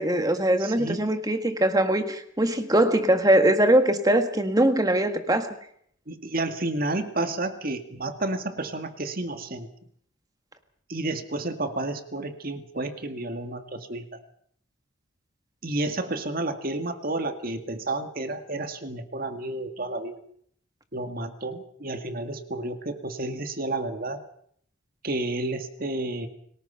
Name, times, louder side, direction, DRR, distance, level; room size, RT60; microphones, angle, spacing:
voice 1, 0.0-5.5, right 1 dB, 20° right, 7 dB, 1.6 m, -22 dB
voice 2, 0.6-1.0 6.1-9.7 10.9-14.0 15.6-20.2 20.9-24.2 25.0-26.3, right 2 dB, 45° right, 8 dB, 2.1 m, -31 dB
29.0 x 19.0 x 5.7 m, 0.66 s
head